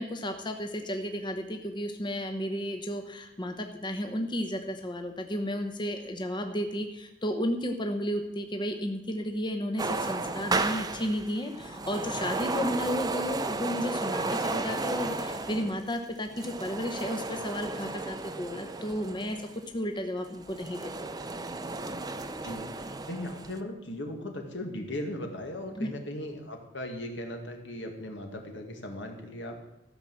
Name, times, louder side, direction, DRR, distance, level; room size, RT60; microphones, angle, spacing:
voice 1, 0.0-19.5 19.7-20.9 25.7-25.9, equal, 25° left, 5 dB, 0.9 m, -33 dB
sound 1, 9.8-19.6 20.2-23.6, right 3 dB, 20° right, 0.7 m, -34 dB
voice 2, 22.4-29.6, left 1 dB, 80° left, 3 dB, 2.0 m, -38 dB
14.0 x 5.9 x 7.5 m, 0.93 s
head